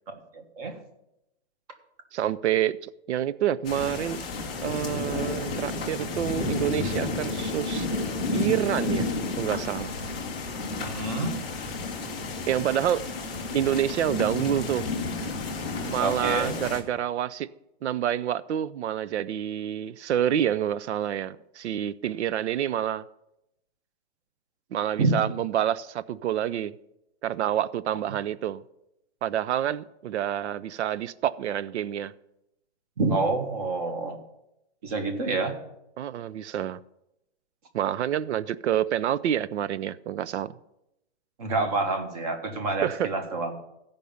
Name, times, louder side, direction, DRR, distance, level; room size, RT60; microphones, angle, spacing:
voice 1, 0.1-0.8 10.8-11.4 16.0-16.5 25.0-25.1 33.0-34.2 34.8-35.6 41.4-43.6, right 3 dB, 35° right, 6 dB, 1.4 m, -27 dB
voice 2, 2.1-4.2 4.6-7.9 8.3-9.1 9.4-9.9 12.5-13.0 13.5-14.9 15.8-17.5 17.8-23.0 24.7-26.7 27.2-28.6 29.2-32.1 36.0-36.8 37.7-40.5 42.7-43.1, right 10 dB, 85° right, 17 dB, 0.6 m, -28 dB
sound 1, 3.6-16.8, left 3 dB, 10° left, 0.4 m, -31 dB
15.0 x 5.3 x 6.9 m, 0.86 s
hypercardioid pair, 180°, 33 cm